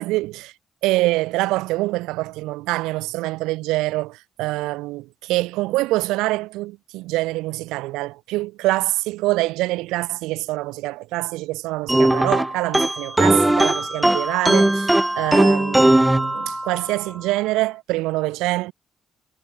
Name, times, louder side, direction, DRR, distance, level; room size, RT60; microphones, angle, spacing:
voice 1, 0.0-0.5 0.8-18.7, right 19 dB, 90° right, 0.9 m, -25 dB
sound 1, 11.9-17.0, right 1 dB, 10° right, 0.9 m, -19 dB
supercardioid pair, 60°, 0 cm